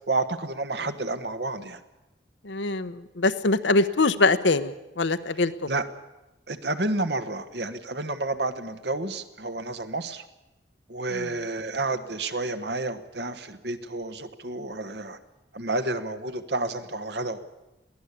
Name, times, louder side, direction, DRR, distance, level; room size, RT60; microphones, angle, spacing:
voice 1, 0.1-1.8 5.7-5.8 6.5-10.2 10.9-15.2 15.5-17.4, right 2 dB, 65° right, 9 dB, 1.5 m, -30 dB
voice 2, 2.4-5.7 11.1-11.2, left 3 dB, 85° left, 11 dB, 1.1 m, -23 dB
22.5 x 16.5 x 8.4 m, 0.98 s
head